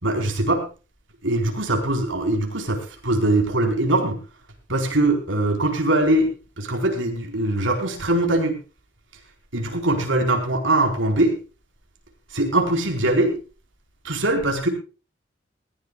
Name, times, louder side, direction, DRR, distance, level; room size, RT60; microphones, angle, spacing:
voice 1, 0.0-0.7 1.2-4.2 4.7-6.3 6.6-8.6 9.5-11.4 12.3-13.4 14.0-14.7, right 1 dB, 85° right, 5 dB, 4.4 m, -22 dB
20.0 x 16.0 x 2.4 m, 0.33 s
head